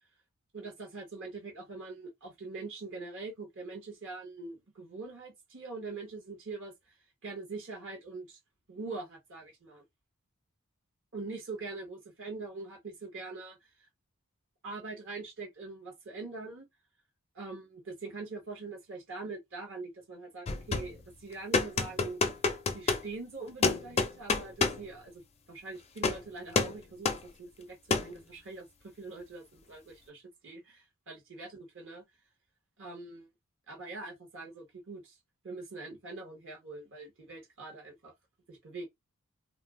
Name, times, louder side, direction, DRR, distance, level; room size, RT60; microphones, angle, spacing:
voice 1, 0.5-6.9 7.2-8.4 8.7-9.8 11.1-13.6 14.6-16.6 17.3-22.2 22.7-25.2 25.5-28.7 29.0-32.0 32.8-33.3 33.7-35.2 35.4-38.1 38.5-38.9, right 3 dB, 60° right, 1.0 m, -43 dB
sound 1, 20.5-21.0 21.5-23.1 23.6-24.8 26.0-26.2 26.6-26.8 27.1-27.2 27.9-28.1, left 4 dB, 30° left, 0.4 m, -28 dB
2.6 x 2.0 x 3.5 m
head